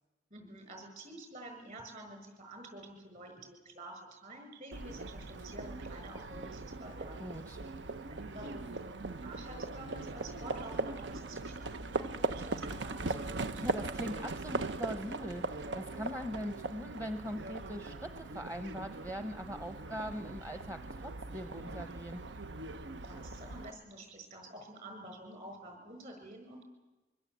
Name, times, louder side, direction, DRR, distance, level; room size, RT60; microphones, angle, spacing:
voice 1, 0.3-7.3 8.1-13.6 23.0-26.6, right 1 dB, 45° right, 5 dB, 7.1 m, -49 dB
Livestock farm animals working animals, 4.7-23.7, right 3 dB, 85° right, 0.8 m, -40 dB
voice 2, 7.2-7.6 13.6-22.2, equal, 20° right, 7 dB, 0.9 m, -41 dB
24.5 x 24.5 x 8.5 m, 1.1 s
head